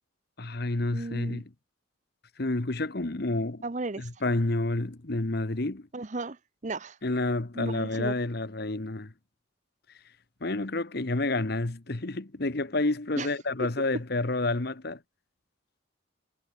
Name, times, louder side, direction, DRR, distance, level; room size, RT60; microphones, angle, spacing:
voice 1, 0.4-1.5 2.4-3.6 4.0-5.9 7.0-9.1 10.4-15.0, left 2 dB, 50° left, 1.1 m, -29 dB
voice 2, 0.9-1.4 3.6-4.1 5.9-6.4 6.6-7.0 7.6-8.1 13.2-13.3, right 3 dB, 35° right, 0.7 m, -34 dB
head